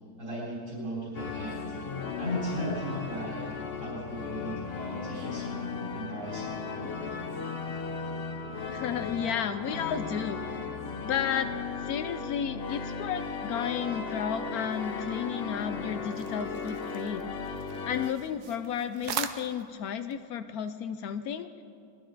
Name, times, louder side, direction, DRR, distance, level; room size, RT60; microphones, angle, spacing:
voice 1, 0.2-1.6 2.2-3.5 3.8-5.6 5.9-7.0, equal, 60° right, -7 dB, 4.6 m, -36 dB
sound 1, 1.1-18.1, left 4 dB, 50° left, 0.8 m, -36 dB
voice 2, 8.7-10.8 11.0-11.5 11.8-21.6, left 8 dB, 75° left, 9 dB, 1.0 m, -33 dB
sound 2, 14.7-20.2, right 8 dB, 80° right, 1.2 m, -42 dB
20.5 x 13.5 x 3.9 m, 2.4 s
omnidirectional pair, 1.7 m